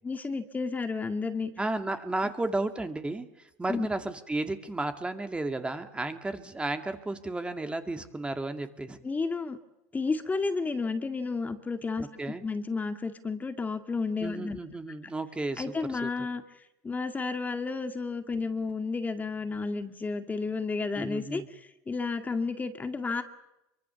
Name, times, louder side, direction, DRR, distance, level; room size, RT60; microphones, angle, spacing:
voice 1, 0.0-1.5 2.2-2.3 3.7-3.9 9.0-9.6 9.9-12.1 12.4-14.6 15.6-16.4 16.8-23.2, left 4 dB, 20° left, 7 dB, 2.1 m, -32 dB
voice 2, 1.6-3.3 3.6-9.0 12.0-12.4 14.2-16.1 20.9-21.5, right 2 dB, 10° right, 7 dB, 2.2 m, -33 dB
25.5 x 23.5 x 7.1 m, 0.92 s
supercardioid pair, 95°, 8 cm